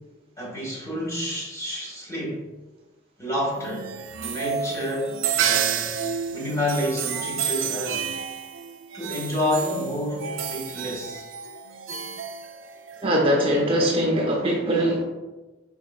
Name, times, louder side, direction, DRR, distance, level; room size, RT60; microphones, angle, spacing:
voice 1, 0.4-2.4 3.2-3.9 4.2-5.9 6.3-8.1 8.9-11.2, left 1 dB, 15° left, -4 dB, 1.4 m, -29 dB
sound 1, 3.5-13.0, right 8 dB, 85° right, 0.4 m, -30 dB
voice 2, 13.0-15.0, equal, 30° right, -2 dB, 0.6 m, -21 dB
4.7 x 4.6 x 2.4 m, 1.1 s
head